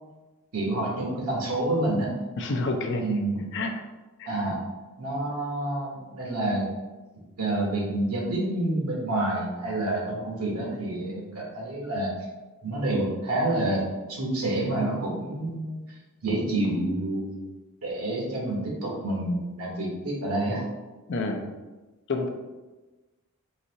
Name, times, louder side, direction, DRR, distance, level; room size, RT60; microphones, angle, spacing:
voice 1, 0.5-2.1 3.0-3.5 4.3-4.6 5.0-6.7 7.4-12.1 12.6-15.8 16.2-17.5 17.8-20.6, right 1 dB, 75° right, -2 dB, 1.2 m, -28 dB
voice 2, 2.4-3.2 3.5-3.8 4.2-4.3 21.1-21.5 22.1-22.3, left 2 dB, 55° left, 4 dB, 0.5 m, -29 dB
4.0 x 2.7 x 3.9 m, 1.2 s
head